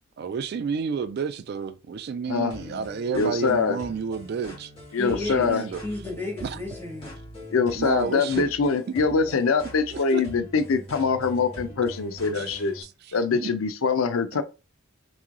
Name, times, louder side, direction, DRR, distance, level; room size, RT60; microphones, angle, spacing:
voice 1, 0.2-4.7 5.2-5.8 6.4-6.6 7.6-8.5 9.9-10.2 12.3-12.6 12.8-13.5 14.3-14.4, right 6 dB, 50° right, 0.3 m, -31 dB
voice 2, 2.3-2.8 3.1-3.8 4.9-5.6 7.5-12.9 13.1-14.4, left 5 dB, 90° left, 0.5 m, -24 dB
sound 1, 2.5-12.8, equal, 30° left, 2.1 m, -42 dB
voice 3, 5.0-7.2, left 2 dB, 10° left, 1.8 m, -34 dB
3.6 x 3.0 x 3.7 m
head